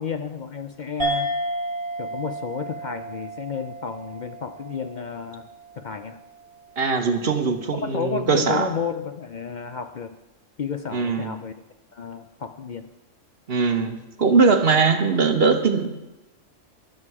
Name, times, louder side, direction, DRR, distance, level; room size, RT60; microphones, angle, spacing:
voice 1, 0.0-1.3 2.0-5.5 5.8-6.2 7.7-10.2 10.6-11.5 11.9-12.9, left 6 dB, 55° left, 8 dB, 0.5 m, -32 dB
sound 1, 1.0-5.9, right 1 dB, 20° right, 3.7 m, -31 dB
voice 2, 6.8-8.7 10.9-11.3 13.5-15.9, right 4 dB, 50° right, 7 dB, 1.2 m, -21 dB
13.5 x 12.0 x 4.8 m, 1.0 s
omnidirectional pair, 1.3 m